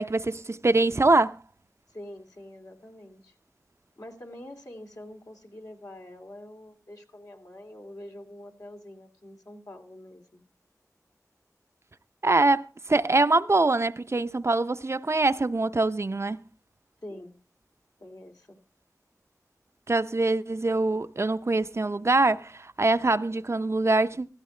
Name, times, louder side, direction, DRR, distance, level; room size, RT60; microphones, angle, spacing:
voice 1, 0.0-1.4 12.2-16.4 19.9-24.3, right 2 dB, 45° right, 0.6 m, -24 dB
voice 2, 1.9-3.3 4.0-10.4 14.0-14.1 17.0-17.4 18.0-18.6, left 1 dB, 70° left, 2.9 m, -45 dB
15.0 x 14.5 x 3.2 m
wide cardioid pair, 50°, 6 cm